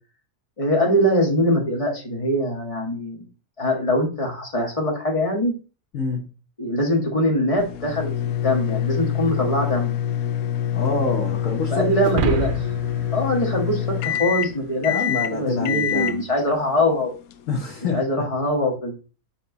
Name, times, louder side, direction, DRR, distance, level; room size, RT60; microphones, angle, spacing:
voice 1, 0.6-3.3 3.6-5.5 6.6-9.9 11.7-12.5 13.1-17.1 17.9-18.9, equal, 25° left, 0 dB, 2.0 m, -22 dB
sound 1, 7.6-17.9, left 10 dB, 90° left, 1.1 m, -26 dB
voice 2, 10.7-12.1 14.9-16.2 17.5-18.0, left 3 dB, 65° left, 1 dB, 1.6 m, -26 dB
sound 2, 12.0-14.5, right 7 dB, 55° right, 0.6 m, -28 dB
7.2 x 4.2 x 4.0 m, 0.34 s
omnidirectional pair, 1.5 m